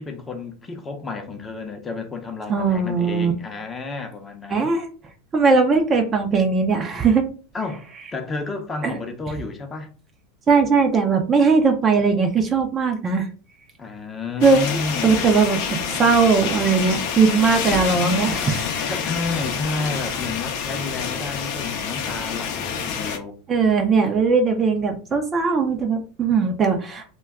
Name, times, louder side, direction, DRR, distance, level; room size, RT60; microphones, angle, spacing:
voice 1, 0.0-4.7 7.5-9.9 13.8-15.3 18.9-23.4, left 3 dB, 20° left, 0.6 m, -31 dB
voice 2, 2.5-3.3 4.5-4.9 5.3-7.2 8.8-8.9 10.5-13.3 14.4-18.9 23.5-27.0, right 4 dB, 25° right, 0.5 m, -19 dB
sound 1, 14.4-23.2, left 7 dB, 60° left, 0.6 m, -27 dB
2.2 x 2.2 x 3.5 m
supercardioid pair, 120°, 0 cm